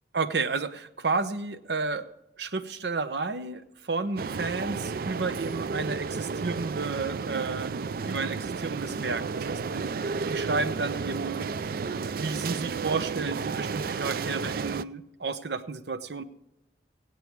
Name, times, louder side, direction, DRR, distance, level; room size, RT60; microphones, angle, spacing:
voice 1, 0.1-2.0 2.4-7.7 8.1-9.9 10.3-11.4 12.2-16.2, right 4 dB, 70° right, 12 dB, 0.7 m, -31 dB
sound 1, 4.2-14.8, right 5 dB, 55° right, 0.3 m, -32 dB
17.5 x 8.5 x 4.6 m, 0.86 s
head